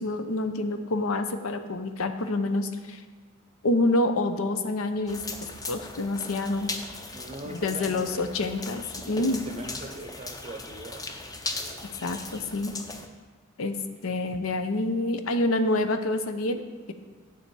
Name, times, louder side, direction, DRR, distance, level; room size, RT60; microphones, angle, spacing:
voice 1, 0.0-3.0 3.6-5.2 5.7-6.7 7.4-9.4 12.0-12.7 13.6-16.6, left 2 dB, 85° left, 8 dB, 0.7 m, -27 dB
sound 1, 5.1-13.1, left 3 dB, 20° left, 0.5 m, -38 dB
voice 2, 7.1-8.2 9.0-11.0, right 2 dB, 30° right, 7 dB, 0.6 m, -41 dB
8.8 x 6.9 x 4.7 m, 1.4 s
head